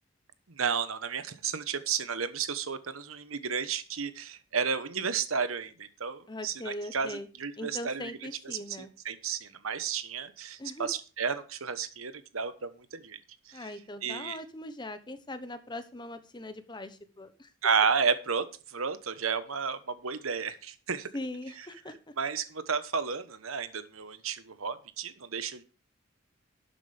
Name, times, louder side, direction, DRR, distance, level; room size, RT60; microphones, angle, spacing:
voice 1, 0.5-8.1 8.4-13.2 13.5-13.6 14.0-14.4 17.6-21.1 22.2-25.6, right 6 dB, 90° right, 12 dB, 1.2 m, -32 dB
voice 2, 6.3-7.3 7.6-8.9 10.6-10.9 13.5-17.5 21.1-22.1, left 1 dB, 20° left, 10 dB, 1.1 m, -40 dB
12.0 x 8.2 x 3.5 m, 0.35 s
head